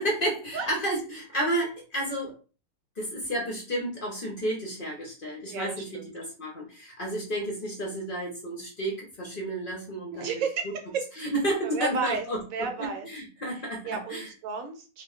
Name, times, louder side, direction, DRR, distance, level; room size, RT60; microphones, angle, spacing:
voice 1, 0.0-2.3 3.0-10.4 11.2-13.8 14.1-14.3, right 1 dB, 45° left, -1 dB, 0.8 m, -31 dB
voice 2, 5.5-6.1 10.1-11.3 11.6-12.2 12.5-13.1 13.8-15.0, right 5 dB, 75° right, 4 dB, 1.0 m, -33 dB
2.4 x 2.2 x 3.3 m, 0.35 s
omnidirectional pair, 1.5 m